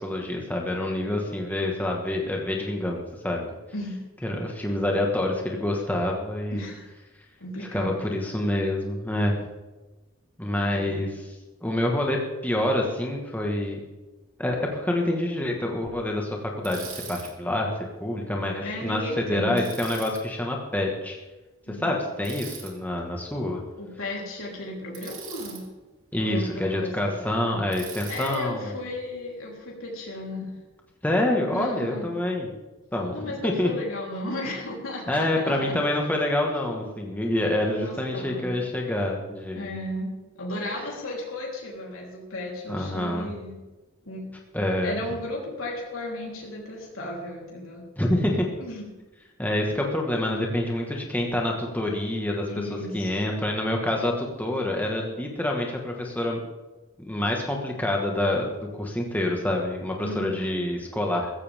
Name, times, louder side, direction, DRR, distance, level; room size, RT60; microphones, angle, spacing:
voice 1, 0.0-3.5 4.2-6.6 7.7-9.3 10.4-11.3 11.6-13.8 14.4-21.2 21.8-23.6 26.1-28.8 31.0-32.5 32.9-33.7 35.1-39.7 42.7-43.3 44.5-44.9 48.0-48.5 49.4-56.4 57.0-61.3, left 1 dB, 10° left, 0 dB, 1.5 m, -27 dB
voice 2, 6.5-6.9 7.4-8.0 10.7-11.0 18.6-19.7 21.7-22.0 23.8-25.7 26.1-27.2 28.1-30.5 31.5-32.2 33.1-35.7 37.3-38.5 39.5-43.6 44.1-44.3 44.8-47.9 48.6-48.9 52.5-53.3 60.0-60.6, left 1 dB, 80° left, -3 dB, 3.6 m, -35 dB
Bicycle, 16.6-17.3 19.6-20.2 22.2-22.7 24.9-25.6 27.7-28.4, right 7 dB, 80° right, 3.1 m, -41 dB
15.5 x 15.0 x 3.6 m, 1.1 s
head